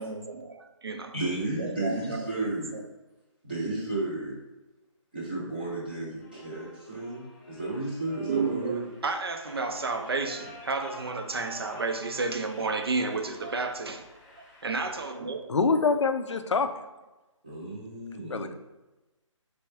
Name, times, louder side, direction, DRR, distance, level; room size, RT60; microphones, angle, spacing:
voice 1, 0.0-1.1 1.6-2.5 8.3-14.1 14.6-15.6, right 3 dB, 50° right, 7 dB, 0.5 m, -31 dB
voice 2, 1.1-2.8 3.4-4.4 5.1-8.9 17.4-18.5, right 2 dB, 15° right, -7 dB, 0.7 m, -33 dB
sound 1, 6.2-15.1, left 1 dB, 15° left, 1.0 m, -49 dB
voice 3, 15.5-16.7 18.3-18.5, left 4 dB, 60° left, 9 dB, 0.4 m, -25 dB
4.3 x 3.4 x 3.3 m, 1.1 s
hypercardioid pair, 175°, 17 cm